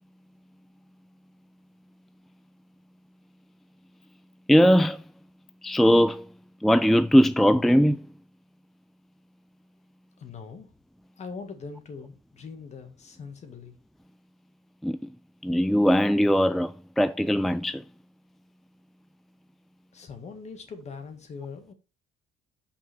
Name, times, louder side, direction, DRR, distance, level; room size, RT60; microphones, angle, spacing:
voice 1, 4.5-5.0 5.6-6.3 6.6-8.0 14.8-15.0 15.4-17.8, equal, ahead, 0.4 m, -20 dB
voice 2, 10.2-10.7 11.2-13.7 19.9-21.7, left 5 dB, 45° left, 1.9 m, -41 dB
5.9 x 5.4 x 4.5 m
cardioid pair, 90°, 15 cm